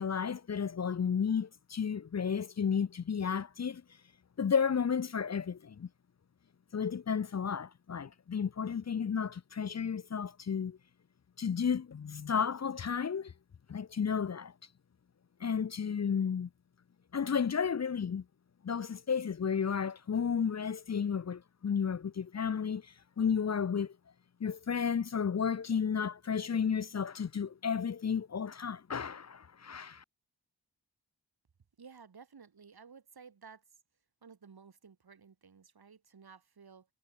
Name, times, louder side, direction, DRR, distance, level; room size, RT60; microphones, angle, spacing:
voice 1, 0.0-3.8 4.4-5.9 6.7-10.8 11.4-13.3 13.7-14.5 15.4-16.5 17.1-18.2 18.6-24.0 24.4-30.0, left 7 dB, 45° left, 0.7 m, -32 dB
voice 2, 31.8-33.6 34.2-36.9, right 6 dB, 80° right, 7.5 m, -55 dB
wide cardioid pair, 75°, 37 cm